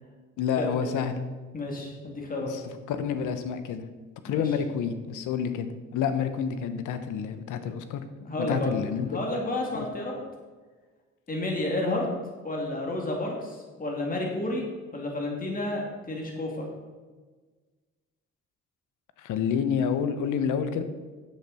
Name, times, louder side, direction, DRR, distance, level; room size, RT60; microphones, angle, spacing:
voice 1, 0.4-1.2 2.4-2.6 2.9-3.8 4.2-8.0 8.4-9.1 9.7-9.8 19.2-20.8, left 7 dB, 85° left, 9 dB, 1.0 m, -29 dB
voice 2, 1.5-2.5 4.3-4.5 8.3-8.8 9.1-10.2 11.3-12.1 12.4-14.7 14.9-16.7, left 2 dB, 30° left, -1 dB, 2.7 m, -31 dB
10.0 x 8.1 x 4.3 m, 1.4 s
cardioid pair, 90°, 30 cm